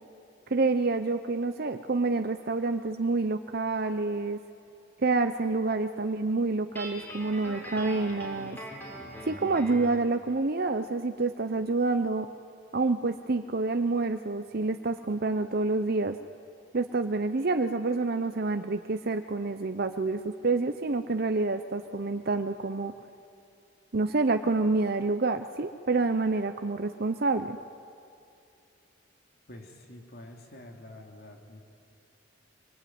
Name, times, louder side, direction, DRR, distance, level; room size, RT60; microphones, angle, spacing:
voice 1, 0.5-4.4 5.0-8.6 9.2-12.3 12.7-16.2 16.7-22.9 23.9-27.6, right 3 dB, 50° right, 8 dB, 0.8 m, -28 dB
Guitar, 6.7-10.0, right 1 dB, 10° left, 4.9 m, -41 dB
voice 2, 29.5-31.6, left 1 dB, 55° left, 2 dB, 3.2 m, -47 dB
25.0 x 24.0 x 9.5 m, 2.6 s
head